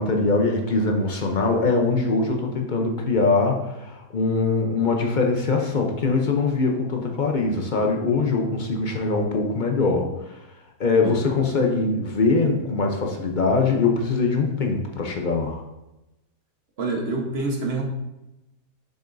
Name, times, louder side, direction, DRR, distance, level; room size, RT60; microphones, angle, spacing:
voice 1, 0.0-10.4 10.8-15.6, left 3 dB, 55° left, 2 dB, 0.5 m, -22 dB
voice 2, 16.8-17.8, right 3 dB, 40° right, 0 dB, 1.2 m, -27 dB
6.9 x 6.2 x 2.6 m, 0.96 s
omnidirectional pair, 1.8 m